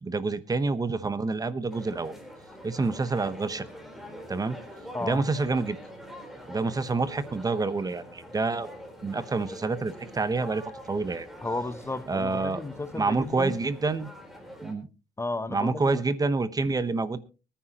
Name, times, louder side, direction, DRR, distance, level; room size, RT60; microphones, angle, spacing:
voice 1, 0.0-2.2 2.6-3.6 4.3-4.6 5.0-5.8 6.5-8.7 9.0-11.3 12.1-12.6 12.9-14.1 14.6-14.9 15.5-17.2, right 3 dB, 20° right, 1.0 m, -28 dB
sound 1, 1.7-14.7, equal, ahead, 4.0 m, -45 dB
voice 2, 11.4-13.6 15.2-16.0, left 2 dB, 15° left, 0.8 m, -33 dB
24.0 x 10.0 x 2.9 m
cardioid pair, 110°, 17 cm